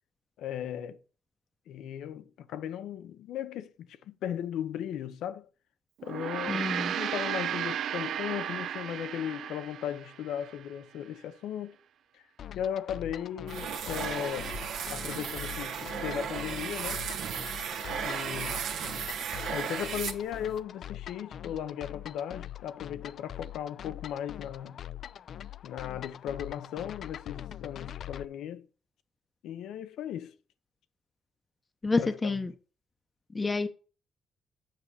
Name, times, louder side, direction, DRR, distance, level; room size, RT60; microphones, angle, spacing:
voice 1, 0.4-1.0 1.7-5.5 6.0-11.8 12.1-12.2 12.5-14.6 14.9-17.0 18.0-18.6 19.5-24.8 25.6-28.7 29.4-30.3 32.0-32.3, left 10 dB, 85° left, 0.7 m, -37 dB
Gong, 6.0-10.6, right 10 dB, 70° right, 0.4 m, -34 dB
voice 2, 6.5-6.9 31.8-32.5 33.3-33.7, left 3 dB, 25° left, 0.7 m, -28 dB
sound 1, 12.4-28.2, left 11 dB, 65° left, 0.4 m, -43 dB
sound 2, 13.5-20.6, right 7 dB, 85° right, 1.1 m, -35 dB
7.6 x 5.7 x 4.9 m
cardioid pair, 90°, 0 cm